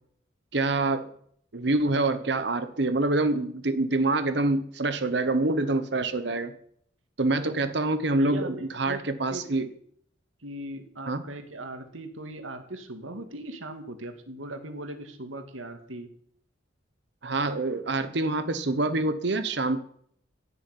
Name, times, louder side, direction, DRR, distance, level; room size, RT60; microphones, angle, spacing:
voice 1, 0.5-1.1 1.5-6.5 7.2-9.7 11.1-11.2 17.2-19.8, right 2 dB, 60° right, 11 dB, 1.0 m, -26 dB
voice 2, 8.2-9.0 9.3-9.6 10.4-16.1, right 1 dB, 90° right, 7 dB, 2.4 m, -39 dB
16.0 x 6.8 x 9.8 m, 0.65 s
head